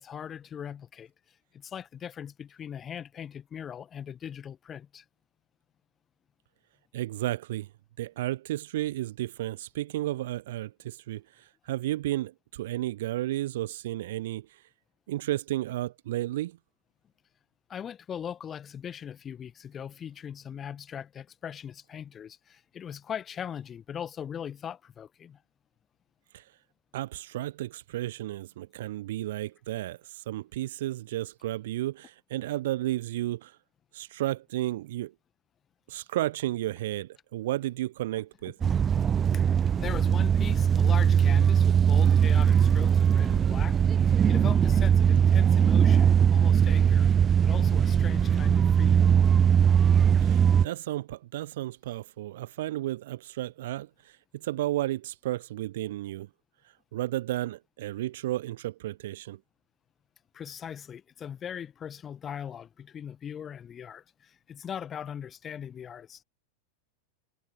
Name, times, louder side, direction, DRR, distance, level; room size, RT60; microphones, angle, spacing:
voice 1, 0.0-5.0 17.7-25.4 38.6-43.8 44.3-49.2 60.3-66.2, left 8 dB, 25° left, 1.8 m, -40 dB
voice 2, 6.9-7.7 8.0-14.6 15.1-16.6 26.3-26.5 26.9-33.6 33.9-35.1 35.9-38.6 50.2-56.3 56.9-59.4, right 15 dB, 55° right, 0.9 m, -33 dB
sound 1, 38.6-50.7, right 8 dB, 25° right, 0.7 m, -21 dB
figure-of-eight pair, 90°, 0 cm